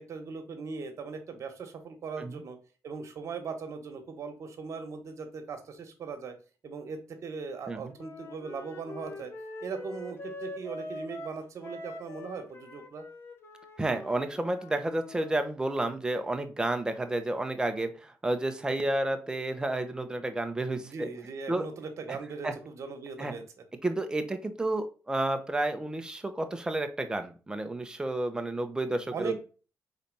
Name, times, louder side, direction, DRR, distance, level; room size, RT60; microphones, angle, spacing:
voice 1, 0.0-2.6 2.8-6.3 6.6-9.3 9.6-13.1 20.8-23.4 29.1-29.4, right 5 dB, 60° right, 6 dB, 1.5 m, -39 dB
Wind instrument woodwind instrument, 8.0-15.4, left 2 dB, 45° left, 1.1 m, -44 dB
voice 2, 13.8-21.1 21.5-21.6 22.4-22.5 23.2-23.3 23.8-29.4, right 2 dB, 15° right, 7 dB, 0.9 m, -31 dB
4.2 x 4.0 x 5.4 m, 0.36 s
cardioid pair, 95°, 6 cm